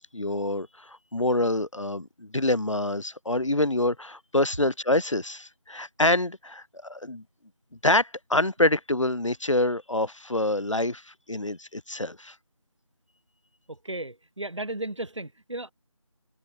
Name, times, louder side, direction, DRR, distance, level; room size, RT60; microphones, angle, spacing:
voice 1, 0.1-7.2 7.8-12.3, left 1 dB, 65° left, 2.7 m, -26 dB
voice 2, 13.7-15.7, right 1 dB, 60° right, 4.6 m, -35 dB
figure-of-eight pair, 175°, 17 cm